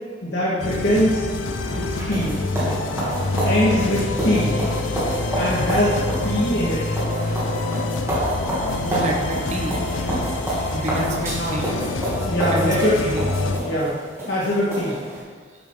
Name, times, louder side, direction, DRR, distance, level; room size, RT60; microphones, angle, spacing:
voice 1, 0.2-1.2 1.7-2.4 3.4-4.6 5.4-6.9 11.4-11.6 12.3-13.2 13.6-14.0 14.3-15.0, equal, 60° left, -7 dB, 1.8 m, -22 dB
sound 1, 0.6-13.6, left 2 dB, 85° left, 0.7 m, -26 dB
sound 2, 1.5-15.2, right 1 dB, 15° right, 2.7 m, -28 dB
voice 2, 8.8-9.8 10.7-11.8 12.5-13.3, right 1 dB, 35° right, 1 dB, 1.1 m, -29 dB
12.0 x 7.9 x 3.9 m, 1.6 s
head